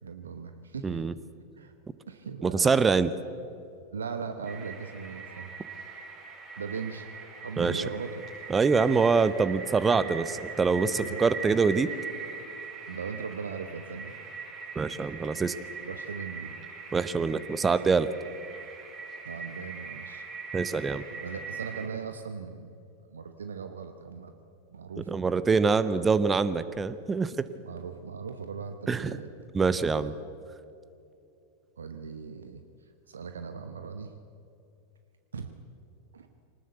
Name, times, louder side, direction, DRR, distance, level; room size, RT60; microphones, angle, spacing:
voice 1, 0.0-1.1 1.6-1.7 2.1-2.7 3.9-5.5 6.6-7.1 7.4-8.2 10.7-11.4 12.9-14.1 15.9-16.6 19.2-20.2 21.1-22.7 23.0-24.3 24.7-25.2 27.6-29.3 31.8-34.1 35.3-35.5 36.1-36.3, right 5 dB, 70° right, 8 dB, 1.0 m, -39 dB
voice 2, 0.8-1.1 2.4-3.1 7.6-7.8 8.5-11.9 14.8-15.5 16.9-18.1 20.5-21.0 25.1-27.4 28.9-29.1 29.5-30.1, right 5 dB, 15° right, 15 dB, 0.8 m, -25 dB
sound 1, 4.4-21.9, right 4 dB, 35° right, 5.7 m, -41 dB
24.0 x 19.0 x 8.1 m, 2.6 s
figure-of-eight pair, 90°, 0 cm